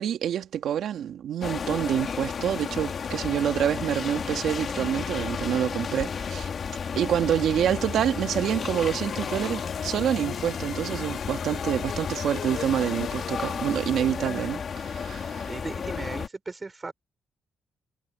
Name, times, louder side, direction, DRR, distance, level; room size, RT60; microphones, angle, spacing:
voice 1, 0.0-6.5 7.0-15.5, right 9 dB, 70° right, 2.2 m, -27 dB
sound 1, 1.4-16.3, left 6 dB, 50° left, 3.8 m, -33 dB
sound 2, 7.6-14.7, left 9 dB, 65° left, 3.7 m, -39 dB
voice 2, 15.5-16.9, right 3 dB, 25° right, 5.3 m, -36 dB
cardioid pair, 90°, 0 cm